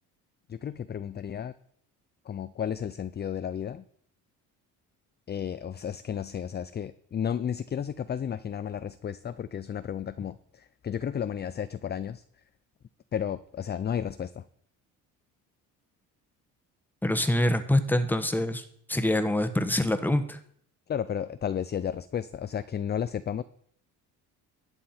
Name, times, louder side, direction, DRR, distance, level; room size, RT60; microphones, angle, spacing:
voice 1, 0.5-1.5 2.3-3.8 5.3-12.2 13.1-14.4 20.9-23.4, left 8 dB, 25° left, 13 dB, 0.5 m, -33 dB
voice 2, 17.0-20.4, left 1 dB, 5° left, 9 dB, 1.1 m, -25 dB
11.5 x 7.5 x 4.4 m, 0.64 s
supercardioid pair, 85°, 38 cm